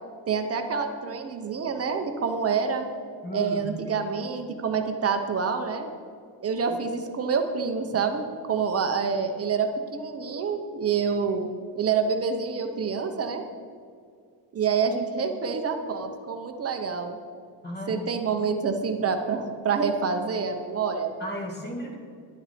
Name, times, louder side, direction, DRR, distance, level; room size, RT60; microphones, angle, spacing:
voice 1, 0.3-2.8 3.3-5.9 6.4-11.5 11.8-13.4 14.5-17.2 17.9-21.1, right 5 dB, 35° right, 6 dB, 0.7 m, -27 dB
voice 2, 3.2-3.7 17.6-18.1 21.2-22.0, left 1 dB, 20° left, 1 dB, 1.6 m, -34 dB
11.0 x 9.8 x 4.2 m, 2.2 s
cardioid pair, 180°, 45 cm